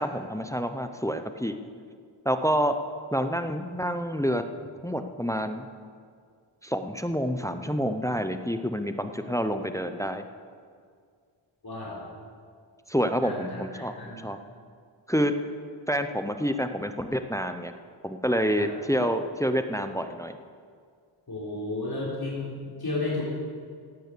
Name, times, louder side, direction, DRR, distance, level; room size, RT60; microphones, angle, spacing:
voice 1, 0.0-1.6 2.2-2.8 3.1-4.5 4.8-5.7 6.6-10.2 12.9-14.4 15.1-15.3 15.9-17.7 18.0-20.4, equal, 5° left, 8 dB, 0.7 m, -28 dB
voice 2, 11.6-12.0 13.2-14.3 18.6-18.7 21.3-23.2, left 2 dB, 50° left, -6 dB, 3.7 m, -33 dB
16.5 x 9.3 x 6.9 m, 2.1 s
wide cardioid pair, 75°, 49 cm